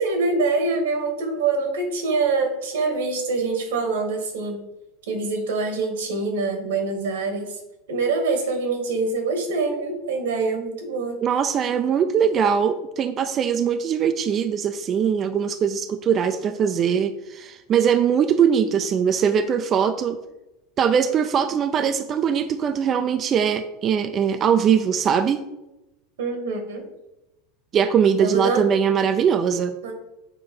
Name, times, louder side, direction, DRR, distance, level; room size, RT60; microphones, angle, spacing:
voice 1, 0.0-4.6 5.1-7.5 7.9-11.2 26.2-26.8 28.2-28.6 29.8-29.9, right 3 dB, 85° right, 4 dB, 1.9 m, -25 dB
voice 2, 11.2-20.2 20.8-25.4 27.7-29.8, right 7 dB, 35° right, 9 dB, 0.4 m, -21 dB
6.9 x 4.1 x 5.5 m, 0.97 s
supercardioid pair, 125°, 0 cm